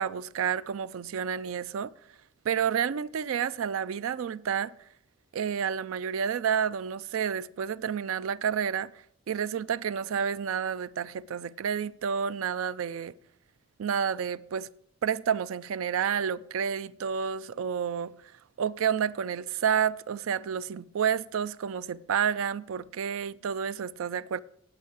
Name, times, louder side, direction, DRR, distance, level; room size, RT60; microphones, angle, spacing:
voice 1, 0.0-1.9 2.4-4.7 5.3-8.9 9.3-13.1 13.8-14.7 15.0-18.1 18.6-24.4, right 7 dB, 85° right, 0.4 m, -30 dB
8.9 x 7.5 x 8.3 m
head